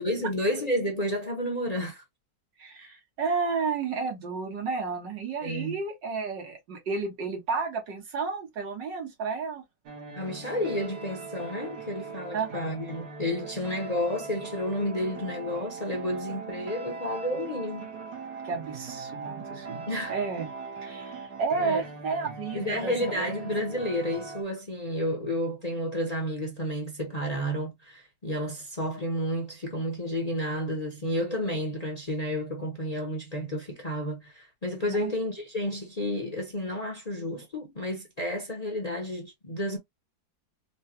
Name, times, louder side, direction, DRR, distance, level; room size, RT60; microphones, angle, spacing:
voice 1, 0.0-2.0 2.8-2.9 5.4-5.8 10.2-17.9 19.9-20.1 21.6-21.8 22.5-39.8, equal, 30° left, 0.8 m, -31 dB
voice 2, 2.6-9.6 12.3-12.7 18.4-20.5 20.8-23.4 34.9-35.1, right 4 dB, 85° right, 2.1 m, -32 dB
sound 1, 9.9-24.4, right 4 dB, 70° right, 1.5 m, -41 dB
4.5 x 2.3 x 2.8 m
omnidirectional pair, 1.9 m